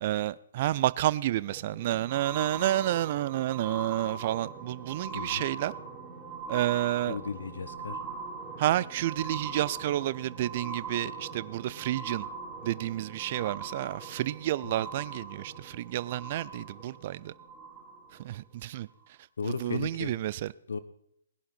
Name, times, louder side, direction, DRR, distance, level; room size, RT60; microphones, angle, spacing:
voice 1, 0.0-5.7 6.5-7.2 8.6-12.3 12.6-17.3 18.2-18.9 19.4-20.5, right 14 dB, 40° right, 0.5 m, -30 dB
sound 1, 1.4-18.2 19.0-19.1, right 4 dB, 15° right, 5.3 m, -41 dB
voice 2, 5.1-5.5 7.1-8.0 19.4-20.1 20.7-20.8, left 5 dB, 65° left, 1.1 m, -35 dB
20.5 x 11.0 x 4.3 m
figure-of-eight pair, 125°, 0 cm